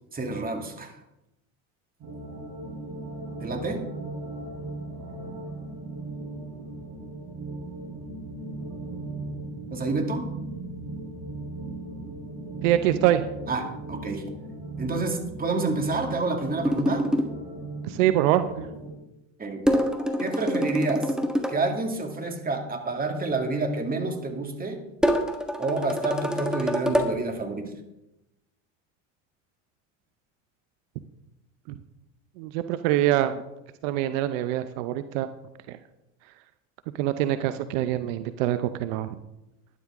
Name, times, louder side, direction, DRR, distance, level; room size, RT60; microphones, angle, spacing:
voice 1, 0.1-0.9 3.4-3.8 9.7-10.3 13.5-14.2 14.8-17.1 19.4-19.6 20.2-21.1 21.5-24.8 25.6-27.7, right 3 dB, 25° right, 4 dB, 2.2 m, -28 dB
sound 1, 2.0-18.9, right 2 dB, 55° right, 4.8 m, -37 dB
voice 2, 12.6-13.2 17.8-18.7 32.4-33.4 33.8-35.3 35.7-35.8 37.0-39.2, right 13 dB, 75° right, 11 dB, 0.7 m, -24 dB
sound 2, 16.6-17.3 19.7-21.6 25.0-27.1, equal, ahead, 1.5 m, -25 dB
12.0 x 11.0 x 3.6 m, 0.90 s
supercardioid pair, 90°, 38 cm